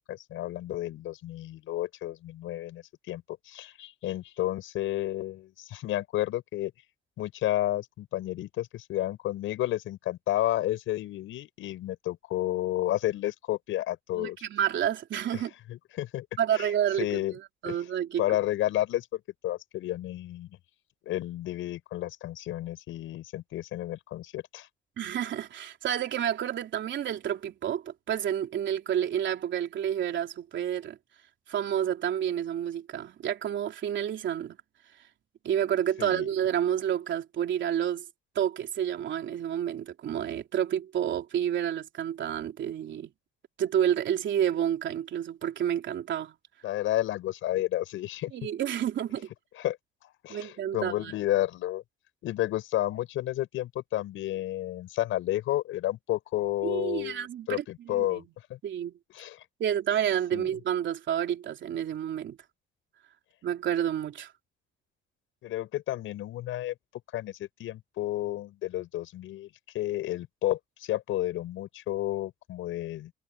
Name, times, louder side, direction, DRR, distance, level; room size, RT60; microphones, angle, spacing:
voice 1, 0.1-6.7 7.2-14.4 15.3-15.4 15.7-16.3 16.5-16.7 17.0-17.4 17.7-17.8 18.2-20.6 21.0-24.7 36.0-36.3 46.6-48.3 49.6-49.8 50.0-51.8 52.2-58.2 58.5-58.6 59.1-59.4 60.3-60.5 65.4-66.7 67.1-69.5 69.7-73.1, left 14 dB, 85° left, 6.7 m, -31 dB
voice 2, 14.1-15.5 16.4-17.2 17.6-18.2 25.0-31.0 31.5-34.6 35.4-38.0 38.3-43.1 43.6-46.3 48.3-49.3 50.3-51.1 56.6-58.2 58.6-58.9 59.6-62.4 63.4-64.3, right 10 dB, 70° right, 3.4 m, -29 dB
cardioid pair, 90°, 20 cm